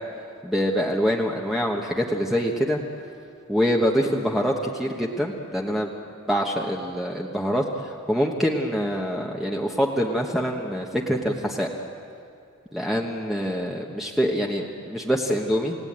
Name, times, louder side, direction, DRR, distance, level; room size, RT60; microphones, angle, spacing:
voice 1, 0.4-2.8 3.5-5.9 6.3-11.7 12.7-15.8, equal, ahead, -1 dB, 1.2 m, -25 dB
29.0 x 17.5 x 8.8 m, 2.4 s
head